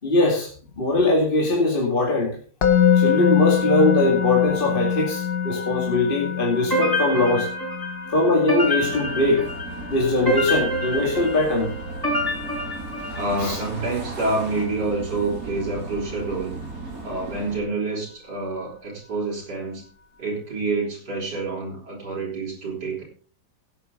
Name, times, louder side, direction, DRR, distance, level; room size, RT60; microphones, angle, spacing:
voice 1, 0.0-0.5 0.8-2.4 3.0-7.5 8.1-9.5 9.9-11.7 13.4-13.6, left 2 dB, 30° left, -1 dB, 2.5 m, -21 dB
Musical instrument, 2.6-13.7, left 8 dB, 70° left, 1.8 m, -25 dB
sound 1, 6.7-13.6, equal, 10° left, 5.7 m, -27 dB
sound 2, 8.8-17.6, right 2 dB, 60° right, 3.4 m, -36 dB
voice 2, 13.1-16.5 17.0-19.8 20.2-23.0, right 3 dB, 80° right, -4 dB, 5.0 m, -28 dB
16.5 x 9.3 x 3.9 m, 0.41 s
omnidirectional pair, 1.7 m